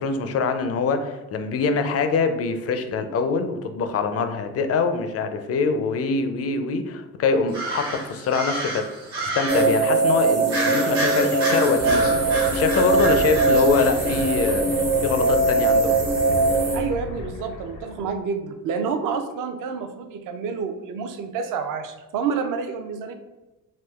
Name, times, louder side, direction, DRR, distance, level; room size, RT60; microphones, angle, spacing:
voice 1, 0.0-8.9 9.2-16.0, left 4 dB, 35° left, 8 dB, 0.4 m, -24 dB
sound 1, 7.5-9.8 10.5-14.5, right 1 dB, 85° right, 1.2 m, -30 dB
sound 2, 9.5-16.8, right 3 dB, 70° right, 1.3 m, -21 dB
sound 3, 11.8-18.2, left 2 dB, 80° left, 0.7 m, -34 dB
voice 2, 16.7-23.1, right 5 dB, 50° right, 7 dB, 0.5 m, -28 dB
3.6 x 2.4 x 2.3 m, 1.0 s
hypercardioid pair, 60°, 42 cm